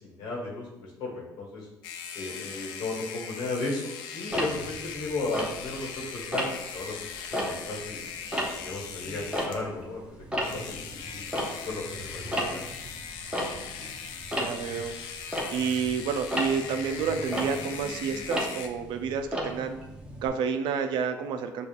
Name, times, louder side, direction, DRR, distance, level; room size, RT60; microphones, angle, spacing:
voice 1, 0.0-1.7 2.1-6.9 7.3-8.0 8.6-10.2 10.5-12.6, left 2 dB, 70° left, -2 dB, 1.2 m, -35 dB
sound 1, 1.8-9.7 10.3-18.7, left 7 dB, 85° left, 0.4 m, -40 dB
Tick-tock, 4.3-6.0 6.3-6.8 7.2-9.9 10.2-20.3, equal, 10° right, 0.6 m, -34 dB
voice 2, 14.4-14.9 15.5-19.8 20.2-21.7, right 6 dB, 65° right, 7 dB, 0.4 m, -29 dB
5.1 x 2.3 x 2.4 m, 0.95 s
cardioid pair, 100°, 8 cm